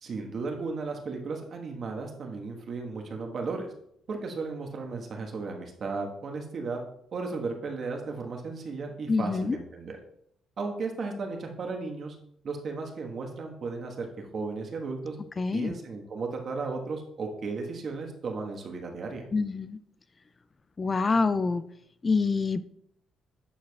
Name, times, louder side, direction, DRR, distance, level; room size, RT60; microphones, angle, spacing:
voice 1, 0.0-3.7 4.1-6.8 7.1-10.0 10.6-12.2 12.4-15.2 15.5-19.3, right 4 dB, 55° right, 2 dB, 1.3 m, -35 dB
voice 2, 9.1-9.6 15.4-15.7 19.3-19.8 20.8-21.6 22.0-22.6, left 4 dB, 35° left, 13 dB, 0.3 m, -26 dB
11.5 x 4.6 x 2.3 m, 0.72 s
cardioid pair, 75°, 0 cm